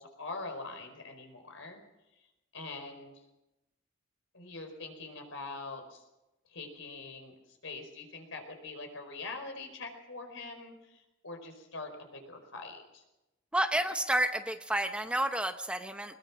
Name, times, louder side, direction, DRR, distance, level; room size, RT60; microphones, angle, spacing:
voice 1, 0.0-1.8 2.5-3.1 4.3-6.0 6.5-7.3 7.6-13.0, left 3 dB, 75° left, 5 dB, 4.8 m, -43 dB
voice 2, 13.5-16.2, right 1 dB, 5° right, 8 dB, 0.8 m, -30 dB
21.5 x 20.5 x 6.2 m, 0.96 s
head